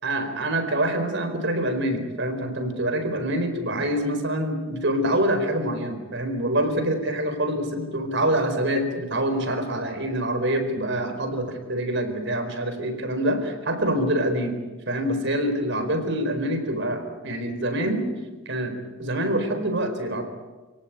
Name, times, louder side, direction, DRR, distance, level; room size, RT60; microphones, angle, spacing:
voice 1, 0.0-14.6 14.9-18.0 18.5-20.2, right 1 dB, 60° right, 8 dB, 4.5 m, -25 dB
29.5 x 18.0 x 9.4 m, 1.3 s
head